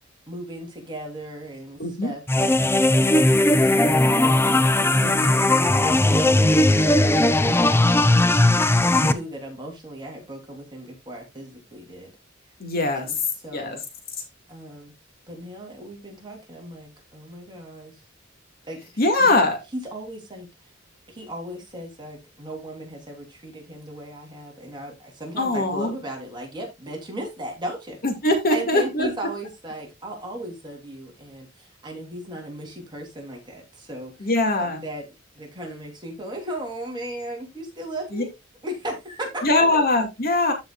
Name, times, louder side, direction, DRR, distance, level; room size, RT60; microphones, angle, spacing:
voice 1, 0.3-4.4 4.9-6.4 6.7-12.1 12.9-13.2 13.4-13.8 14.5-14.9 15.3-17.9 18.6-19.3 19.7-20.5 21.1-28.0 28.5-34.3 34.6-35.1 35.4-38.3 38.6-39.8, right 1 dB, 25° right, 3.5 m, -37 dB
voice 2, 1.8-2.1 5.0-5.3 12.6-13.1 13.5-13.8 19.0-19.6 25.4-25.9 28.0-29.1 34.2-34.8 38.1-38.2 39.4-40.5, left 2 dB, 50° left, 2.2 m, -22 dB
sound 1, 2.3-9.1, left 1 dB, 10° left, 0.6 m, -18 dB
14.0 x 5.6 x 2.4 m
head